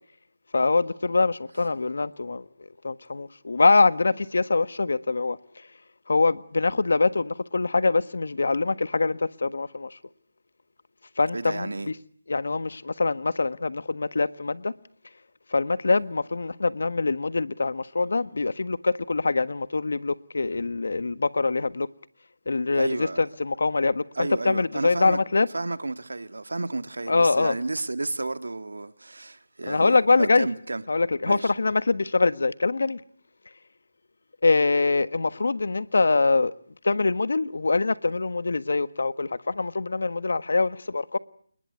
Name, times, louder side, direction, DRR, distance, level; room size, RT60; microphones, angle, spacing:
voice 1, 0.5-2.4 2.8-5.4 6.1-10.0 11.2-11.9 12.3-14.7 15.5-21.9 22.5-25.5 27.1-27.6 29.7-30.5 30.9-33.0 34.4-36.5 36.8-41.2, left 3 dB, 70° left, 1.5 m, -24 dB
voice 2, 11.3-11.9 22.7-23.2 24.2-25.2 25.5-30.8 31.3-31.5, right 2 dB, 80° right, 1.9 m, -32 dB
29.0 x 20.5 x 9.6 m
figure-of-eight pair, 160°, 0 cm